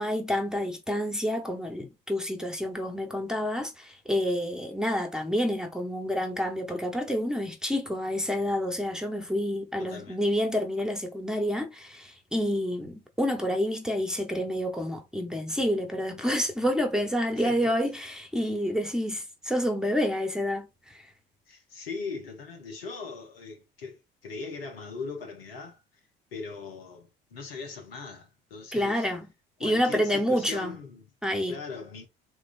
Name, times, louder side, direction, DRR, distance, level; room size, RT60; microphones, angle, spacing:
voice 1, 0.0-21.0 28.7-29.3 29.6-30.8 31.2-31.6, equal, ahead, 0.9 m, -28 dB
voice 2, 9.8-10.2 17.4-17.7 21.5-25.8 26.3-29.1 29.6-31.0 31.5-32.1, left 4 dB, 80° left, 1.0 m, -39 dB
3.7 x 3.2 x 2.5 m
figure-of-eight pair, 55°, 29 cm